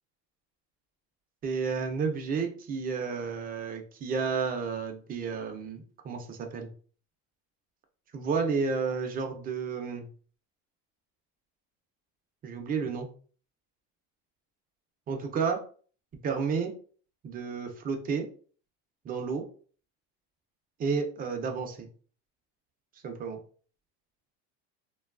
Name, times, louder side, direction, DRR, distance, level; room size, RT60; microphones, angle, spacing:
voice 1, 1.4-6.7 8.1-10.1 12.4-13.1 15.1-15.6 16.2-16.7 17.2-18.3 19.0-19.4 20.8-21.9 23.0-23.4, right 5 dB, 25° right, 5 dB, 0.4 m, -31 dB
2.9 x 2.3 x 2.3 m, 0.43 s
cardioid pair, 135°, 36 cm